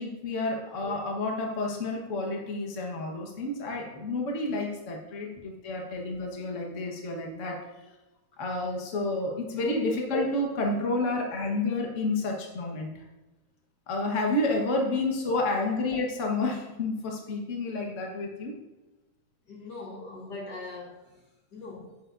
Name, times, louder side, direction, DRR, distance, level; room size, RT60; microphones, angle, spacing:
voice 1, 0.0-7.6 8.4-13.0 13.9-18.6, left 2 dB, 85° left, 0 dB, 0.6 m, -30 dB
voice 2, 19.5-22.1, left 3 dB, 60° left, -1 dB, 1.1 m, -42 dB
10.0 x 9.4 x 2.6 m, 1.1 s
omnidirectional pair, 3.7 m